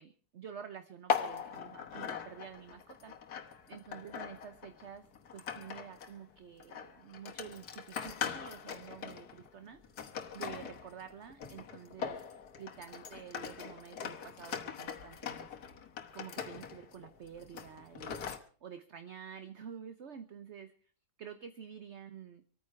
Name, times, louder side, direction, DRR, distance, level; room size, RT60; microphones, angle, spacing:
voice 1, 0.0-3.1 3.7-5.1 5.3-9.8 10.3-12.2 12.6-15.5 16.1-20.9 21.2-22.4, right 8 dB, 50° right, 10 dB, 1.0 m, -49 dB
sound 1, 1.1-6.2 6.6-18.4, left 7 dB, 70° left, 1.7 m, -41 dB
26.0 x 9.3 x 4.7 m, 0.42 s
omnidirectional pair, 1.8 m